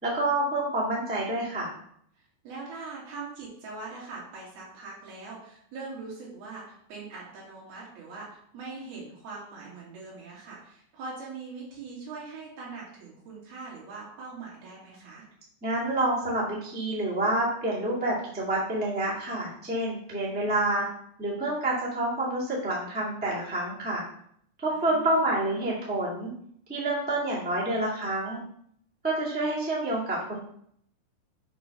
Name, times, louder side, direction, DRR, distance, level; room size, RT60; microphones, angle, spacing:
voice 1, 0.0-1.7 15.6-20.9 21.2-24.0 24.6-26.3 26.7-28.4 29.0-30.4, right 1 dB, 10° right, -6 dB, 0.5 m, -28 dB
voice 2, 2.2-15.2 20.3-20.4 24.7-25.1, right 4 dB, 65° right, -7 dB, 4.1 m, -42 dB
8.3 x 3.0 x 6.0 m, 0.68 s
omnidirectional pair, 4.9 m